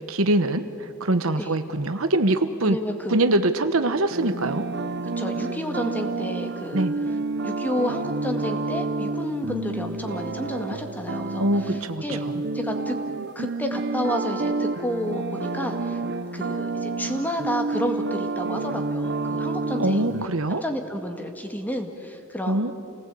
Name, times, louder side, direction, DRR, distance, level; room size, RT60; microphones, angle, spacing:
voice 1, 0.1-2.8 3.1-4.7 6.7-6.9 11.4-12.4 19.8-20.6 22.5-22.7, right 2 dB, 70° right, 9 dB, 1.2 m, -23 dB
voice 2, 2.6-3.2 5.2-6.9 7.4-12.2 12.5-13.0 13.4-16.0 16.3-20.1 20.5-22.7, equal, 10° left, 4 dB, 2.0 m, -31 dB
sound 1, 4.1-20.3, right 3 dB, 55° right, 1.0 m, -29 dB
29.0 x 19.0 x 8.5 m, 2.5 s
head